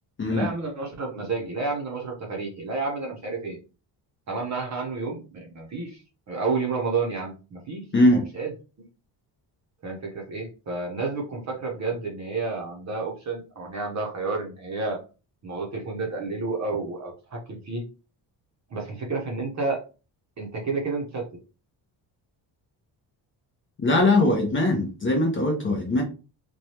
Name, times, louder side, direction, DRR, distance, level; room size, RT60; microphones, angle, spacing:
voice 1, 0.3-3.6 4.3-7.8 8.1-8.5 8.8-8.9 9.8-15.0 15.4-17.8 18.7-19.8 20.4-21.3, right 3 dB, 40° right, 0 dB, 0.7 m, -30 dB
voice 2, 7.9-8.2 23.8-26.0, left 2 dB, 25° left, 1 dB, 0.6 m, -21 dB
3.1 x 2.2 x 2.8 m, 0.33 s
cardioid pair, 140°, 45 cm